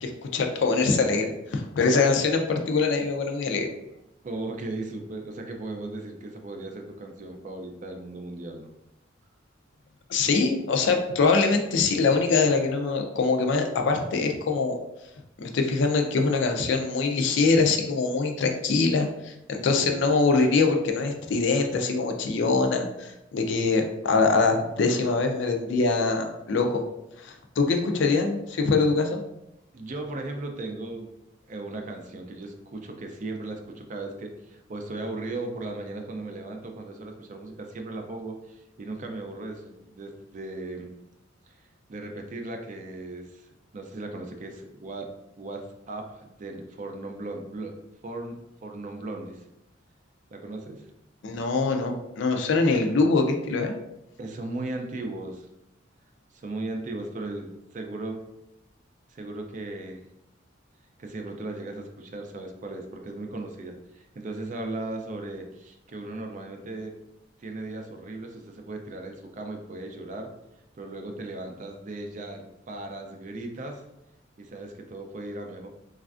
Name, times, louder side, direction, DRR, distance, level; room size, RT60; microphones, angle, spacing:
voice 1, 0.0-3.7 10.1-14.8 15.4-26.8 27.2-29.2 51.2-53.7, left 4 dB, 65° left, 4 dB, 0.4 m, -23 dB
voice 2, 4.2-8.7 19.5-20.0 29.7-31.1 31.5-40.9 41.5-41.6 41.9-43.5 43.7-45.1 45.4-47.8 48.0-49.4 50.3-50.9 54.2-55.5 56.3-58.2 59.1-60.1 61.0-67.0 67.4-70.3 70.8-73.8 74.4-75.7, right 2 dB, 40° right, 4 dB, 0.4 m, -37 dB
3.1 x 2.4 x 2.4 m, 0.86 s
head